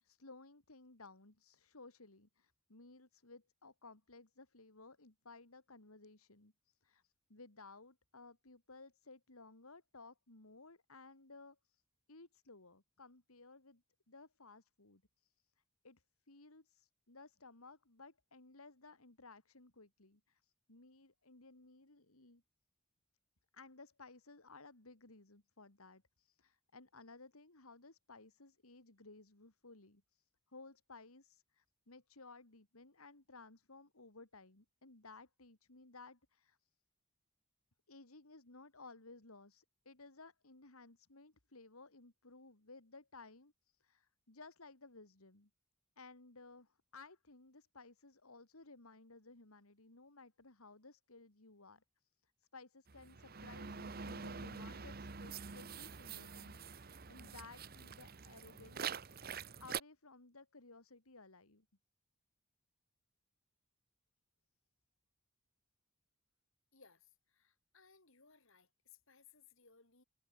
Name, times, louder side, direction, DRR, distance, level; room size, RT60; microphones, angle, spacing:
voice 1, 0.0-11.8 12.1-13.8 14.1-15.3 15.8-22.4 23.5-36.6 37.9-43.5 43.8-45.5 46.0-51.8 52.2-59.3 59.6-61.6, left 3 dB, 80° left, 2.8 m, -58 dB
sound 1, 52.9-59.8, right 6 dB, 45° right, 1.0 m, -46 dB
voice 2, 66.7-70.0, left 5 dB, 65° left, 4.6 m, -65 dB
head